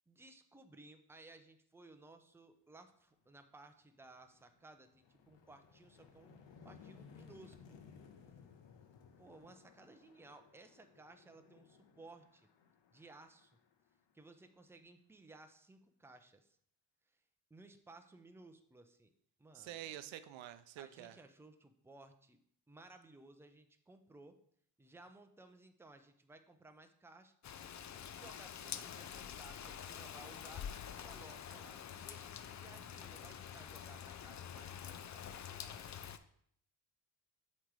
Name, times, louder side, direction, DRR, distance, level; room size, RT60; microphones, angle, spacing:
voice 1, 0.1-6.4 6.6-7.8 9.2-12.5 12.9-13.5 14.1-16.6 17.5-19.1 19.4-19.9 20.8-22.4 22.7-24.4 24.8-27.3 28.1-30.7 31.0-36.1, right 2 dB, 5° right, 7 dB, 0.6 m, -59 dB
sound 1, 3.2-3.4 3.8-14.6, left 6 dB, 75° left, 0.9 m, -61 dB
voice 2, 19.5-21.2, right 12 dB, 90° right, 12 dB, 0.5 m, -48 dB
Rain, 27.4-36.2, left 9 dB, 40° left, 0.4 m, -47 dB
7.8 x 3.2 x 4.7 m, 0.66 s
cardioid pair, 80°, 44 cm